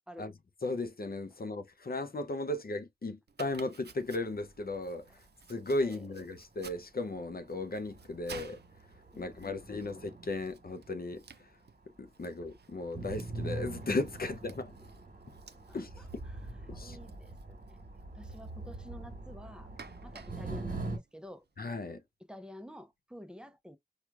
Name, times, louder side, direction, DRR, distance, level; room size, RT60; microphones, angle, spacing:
voice 1, 0.6-5.1 5.5-8.6 9.2-11.2 12.0-14.7 15.7-16.1 16.7-17.0 21.6-22.0, left 2 dB, 65° left, 0.5 m, -36 dB
Domestic sounds home sounds, 3.3-21.7, right 6 dB, 90° right, 0.4 m, -56 dB
sound 1, 3.9-4.9 5.2-5.5 6.2-6.3 6.9-7.0 7.3-11.7 11.9-21.0, right 2 dB, 55° right, 1.3 m, -43 dB
voice 2, 9.1-9.8 15.7-17.8 18.1-21.4 22.3-23.8, equal, 5° right, 0.5 m, -50 dB
4.5 x 2.3 x 2.3 m
wide cardioid pair, 50°, 17 cm